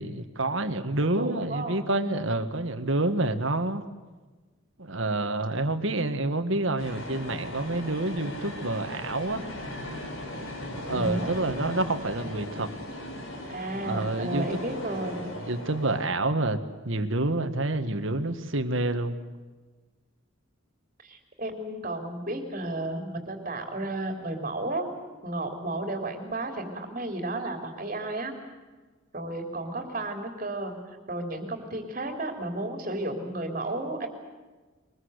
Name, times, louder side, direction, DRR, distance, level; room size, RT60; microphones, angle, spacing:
voice 1, 0.0-3.8 4.8-9.5 10.7-12.7 13.8-14.5 15.5-19.1, right 2 dB, 65° right, 8 dB, 1.9 m, -28 dB
voice 2, 1.0-1.7 10.9-11.3 13.5-15.3 21.0-24.9 25.2-28.3 29.1-30.8 31.1-34.1, right 2 dB, 35° right, 4 dB, 3.4 m, -33 dB
sound 1, 6.8-16.0, left 1 dB, 80° left, 7.0 m, -38 dB
23.5 x 21.5 x 8.2 m, 1.3 s
head